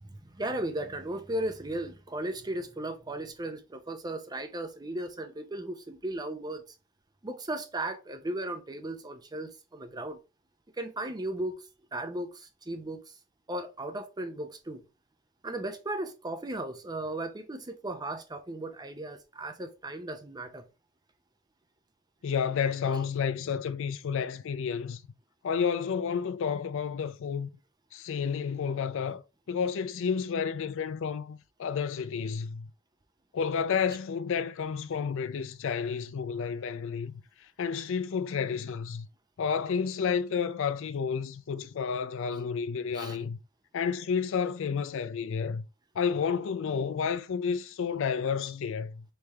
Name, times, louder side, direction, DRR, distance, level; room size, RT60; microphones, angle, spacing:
voice 1, 0.0-6.6 7.2-10.2 10.8-13.2 13.5-14.8 15.4-20.7 42.9-43.2, right 1 dB, 20° right, 0.6 m, -36 dB
voice 2, 22.2-25.0 25.4-27.5 27.9-29.2 29.5-32.7 33.3-37.1 37.6-39.1 39.4-43.4 43.7-45.6 46.0-49.0, left 6 dB, 65° left, 0.4 m, -30 dB
3.5 x 3.3 x 4.1 m
head